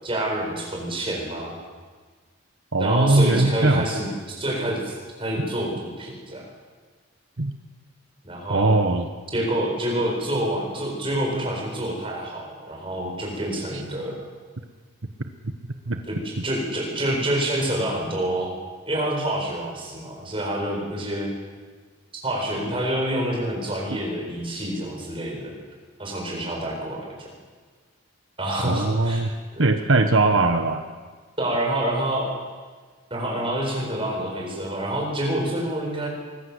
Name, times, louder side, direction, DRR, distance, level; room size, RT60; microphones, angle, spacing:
voice 1, 0.0-1.6 2.8-4.1 4.4-6.5 8.2-8.8 9.3-14.2 16.0-18.5 18.9-21.3 22.1-25.5 26.0-27.3 28.4-29.2 29.5-29.6 31.4-32.3 33.1-36.1, right 1 dB, 25° right, -1 dB, 7.5 m, -27 dB
voice 2, 2.7-3.9 7.4-7.5 8.5-9.1 13.7-13.8 15.9-16.0 16.4-16.5 28.6-29.3 29.6-30.8, right 2 dB, 75° right, 6 dB, 1.3 m, -20 dB
24.5 x 21.5 x 8.1 m, 1.5 s
head